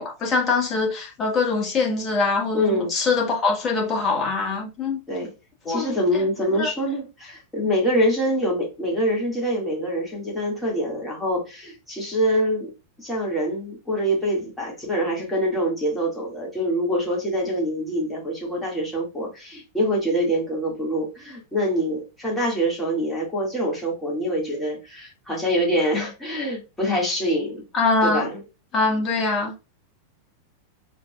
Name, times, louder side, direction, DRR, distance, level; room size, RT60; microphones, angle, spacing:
voice 1, 0.0-5.0 5.6-5.8 6.6-6.7 27.7-28.3 28.7-29.5, left 3 dB, 25° left, 1.7 m, -23 dB
voice 2, 2.5-2.9 5.1-5.3 5.7-12.7 13.0-27.6 28.0-28.4, equal, 5° left, 2.2 m, -25 dB
5.1 x 3.8 x 2.4 m
figure-of-eight pair, 90°, 0 cm